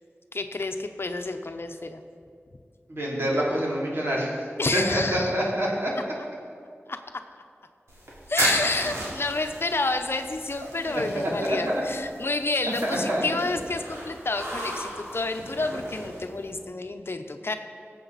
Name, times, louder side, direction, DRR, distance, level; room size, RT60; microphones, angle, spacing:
voice 1, 0.3-2.0 4.6-5.4 6.9-7.2 8.3-17.5, left 3 dB, 60° left, 7 dB, 0.7 m, -29 dB
voice 2, 2.9-4.3 4.7-5.9 10.9-11.8 12.8-13.2, equal, 60° right, -5 dB, 3.2 m, -26 dB
sound 1, 7.9-16.6, right 1 dB, 85° right, 2.7 m, -34 dB
18.0 x 7.8 x 4.1 m, 2.3 s
wide cardioid pair, 50°, 5 cm